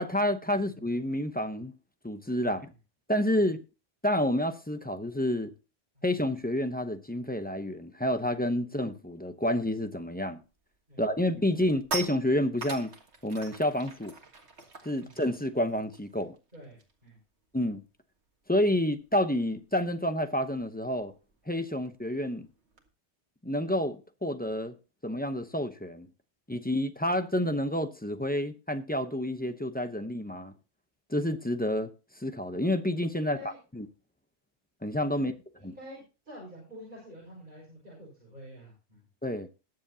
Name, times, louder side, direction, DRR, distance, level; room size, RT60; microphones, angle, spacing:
voice 1, 0.0-1.7 2.0-2.6 3.1-3.6 4.0-5.5 6.0-10.4 11.0-12.9 13.2-14.1 14.8-16.4 17.5-17.8 18.5-21.1 21.5-22.5 23.4-24.7 25.0-26.1 26.5-30.5 31.1-31.9 32.2-33.4 33.7-33.9 34.8-35.3 35.6-35.7 39.2-39.5, left 1 dB, 10° left, 0.7 m, -29 dB
sound 1, 10.5-10.8 11.2-17.1 17.4-17.6 17.9-22.9, right 4 dB, 70° right, 2.0 m, -43 dB
voice 2, 16.5-17.2 33.2-33.6 35.1-39.1, equal, 45° right, 6.1 m, -48 dB
20.5 x 7.7 x 2.8 m
omnidirectional pair, 1.2 m